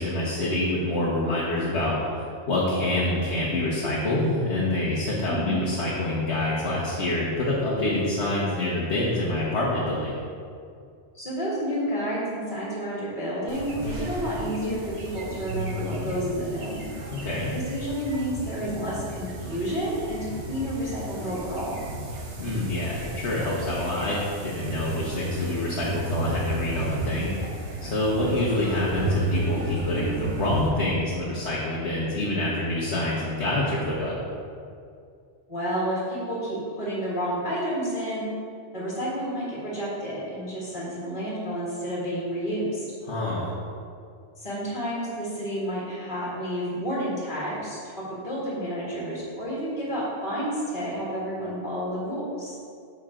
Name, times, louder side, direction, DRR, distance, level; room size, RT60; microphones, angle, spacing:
voice 1, 0.0-10.2 17.1-17.5 22.4-27.5 27.8-34.1 43.1-43.5, left 1 dB, 70° left, -6 dB, 1.5 m, -26 dB
voice 2, 5.3-5.6 11.1-16.8 17.5-21.8 35.5-38.3 38.7-42.8 44.4-47.8 48.2-52.6, equal, 45° left, -7 dB, 2.1 m, -30 dB
sound 1, 13.5-30.7, right 2 dB, 80° right, 1.4 m, -33 dB
8.9 x 6.4 x 3.8 m, 2.3 s
omnidirectional pair, 1.2 m